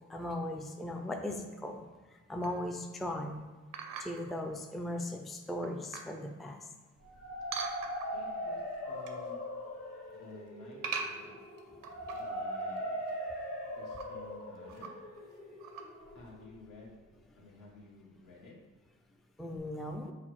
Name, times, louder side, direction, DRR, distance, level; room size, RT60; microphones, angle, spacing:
voice 1, 0.1-3.5 4.0-6.6 19.4-20.1, left 1 dB, ahead, 4 dB, 0.3 m, -38 dB
sound 1, 2.4-2.7 3.7-4.3 4.9-5.0 5.5-6.2 7.5-8.3 8.7-9.3 9.5-10.0 10.8-12.4 12.7-12.8 13.1-13.2 13.7-14.1 14.7-15.2 15.6-15.8, right 5 dB, 90° right, 0.6 m, -41 dB
sound 2, 7.0-16.9, equal, 45° left, 1.2 m, -40 dB
voice 2, 8.1-8.6 8.9-9.4 10.1-11.5 12.1-12.9 13.7-14.9 16.1-17.0 17.4-18.6, left 2 dB, 70° left, -4 dB, 1.4 m, -53 dB
5.5 x 2.0 x 4.7 m, 1.3 s
cardioid pair, 105°, 32 cm